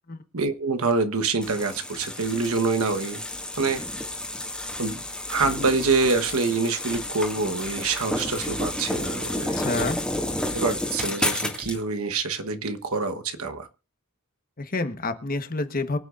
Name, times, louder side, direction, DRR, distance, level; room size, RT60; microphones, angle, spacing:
voice 1, 0.3-3.2 3.6-3.8 4.8-5.0 5.3-9.6 10.5-13.7, right 4 dB, 85° right, 7 dB, 1.2 m, -26 dB
sound 1, 1.4-11.8, left 1 dB, 5° left, 2.0 m, -31 dB
voice 2, 9.5-10.1 14.6-16.0, left 3 dB, 40° left, 9 dB, 1.2 m, -28 dB
24.0 x 8.0 x 2.5 m, 0.33 s
head